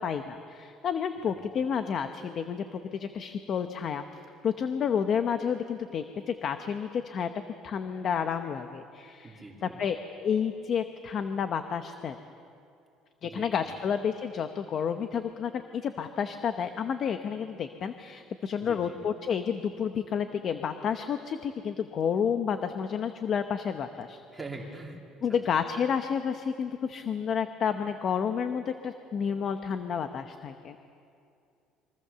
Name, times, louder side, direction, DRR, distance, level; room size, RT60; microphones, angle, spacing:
voice 1, 0.0-4.0 4.4-7.3 7.6-12.2 13.2-24.2 25.2-30.8, left 7 dB, 35° left, 8 dB, 0.8 m, -30 dB
voice 2, 9.2-9.8 13.2-13.8 18.6-19.0 24.3-25.0 25.5-25.6, right 2 dB, 5° right, -1 dB, 2.7 m, -43 dB
27.5 x 23.5 x 6.8 m, 2.5 s
cardioid pair, 175°, 0 cm